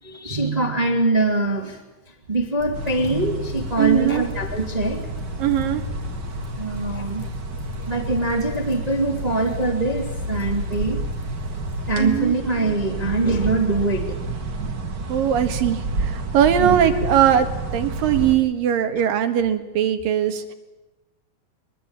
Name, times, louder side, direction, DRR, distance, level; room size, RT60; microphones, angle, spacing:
voice 1, 0.0-1.8 2.1-5.0 6.6-7.2 7.9-11.0 11.9-14.2 16.6-16.8, right 2 dB, 15° right, 3 dB, 1.8 m, -23 dB
sound 1, 2.6-12.2, left 2 dB, 60° left, 5.9 m, -34 dB
sound 2, 2.7-18.4, right 2 dB, 40° right, 1.8 m, -30 dB
voice 2, 3.8-4.2 5.4-5.8 12.0-12.3 15.1-20.5, right 9 dB, 75° right, 8 dB, 3.3 m, -20 dB
22.5 x 21.5 x 8.8 m, 1.1 s
omnidirectional pair, 4.1 m